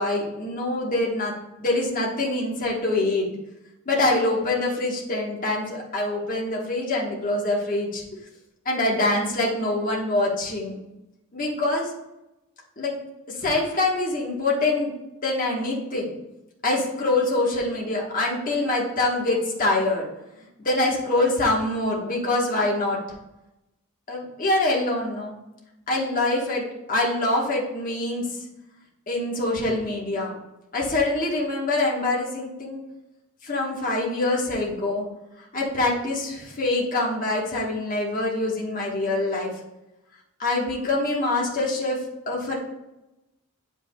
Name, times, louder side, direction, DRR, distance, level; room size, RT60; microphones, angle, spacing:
voice 1, 0.0-1.3 1.6-3.3 3.9-8.0 8.6-10.8 11.3-11.9 12.8-12.9 13.3-14.9 15.2-16.1 16.6-20.1 20.6-23.0 24.1-25.3 25.9-28.4 29.1-30.3 30.7-32.8 33.4-35.1 35.5-39.5 40.4-42.0 42.3-42.6, left 2 dB, 40° left, -3 dB, 1.2 m, -25 dB
8.0 x 5.4 x 2.2 m, 0.94 s
head